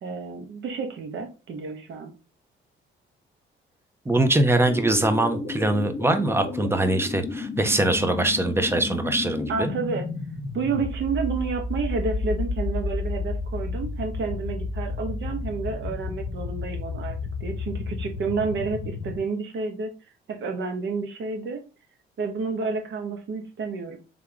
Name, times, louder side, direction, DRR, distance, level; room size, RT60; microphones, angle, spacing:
voice 1, 0.0-2.1 9.5-10.1 10.5-19.9 20.3-21.6 22.2-24.0, right 4 dB, 70° right, 4 dB, 1.2 m, -30 dB
voice 2, 4.1-9.7, right 2 dB, 10° right, 8 dB, 0.8 m, -22 dB
sound 1, 4.7-19.2, left 3 dB, 45° left, 1.2 m, -32 dB
3.6 x 3.5 x 3.5 m, 0.32 s
cardioid pair, 90°, 20 cm